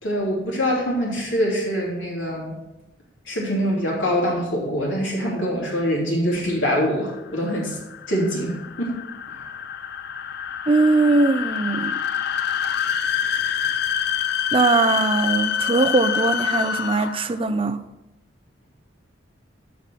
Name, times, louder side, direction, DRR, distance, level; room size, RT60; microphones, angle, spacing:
voice 1, 0.0-2.5 3.2-7.8 8.1-9.0 9.3-9.5, equal, 85° left, 3.2 m, -24 dB
sound 1, 6.9-17.4, left 8 dB, 60° left, 0.4 m, -26 dB
voice 2, 10.7-11.9 14.5-17.8, right 3 dB, 30° right, 0.5 m, -20 dB
8.3 x 6.1 x 5.9 m
head